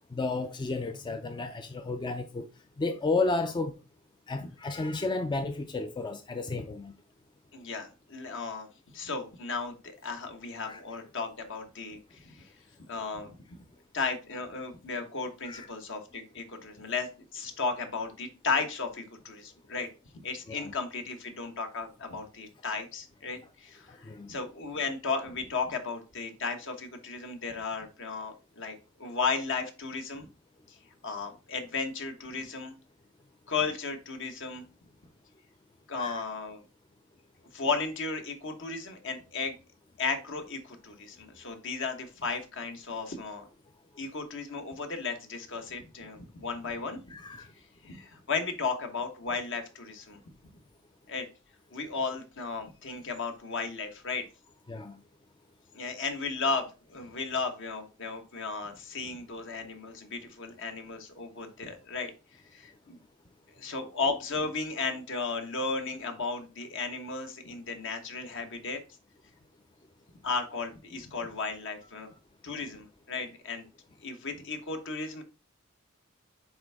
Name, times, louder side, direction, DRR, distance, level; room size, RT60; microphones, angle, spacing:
voice 1, 0.1-2.5 2.8-3.8 4.3-6.9 10.7-10.8 15.4-15.7 20.5-20.7 23.9-24.4 36.0-36.2 47.1-47.5 54.7-55.0, left 3 dB, 20° left, 0.4 m, -32 dB
voice 2, 7.5-8.7 8.9-12.5 12.9-13.4 13.9-19.9 20.2-30.3 30.7-30.8 31.0-32.7 33.5-34.6 35.9-36.6 37.5-39.6 40.0-43.5 44.0-47.0 47.8-50.2 51.1-51.3 51.7-54.2 55.7-62.1 62.5-63.0 63.6-68.8 70.2-72.1 72.4-73.7 74.0-75.2, left 4 dB, 60° left, 1.2 m, -35 dB
8.7 x 3.5 x 3.4 m
head